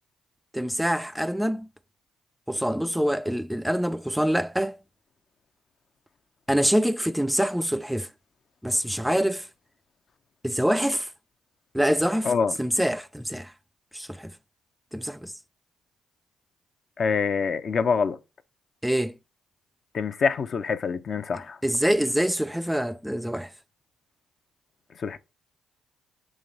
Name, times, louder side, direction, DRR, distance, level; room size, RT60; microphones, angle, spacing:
voice 1, 0.5-1.7 2.5-4.8 6.5-8.1 8.6-9.5 10.4-11.1 11.7-12.3 12.6-13.5 13.9-14.3 14.9-15.3 18.8-19.1 21.6-23.5, equal, 5° right, 0.4 m, -25 dB
voice 2, 17.0-18.2 19.9-21.6 25.0-25.2, left 5 dB, 55° left, 0.6 m, -25 dB
6.3 x 3.1 x 5.2 m
supercardioid pair, 60°, 0 cm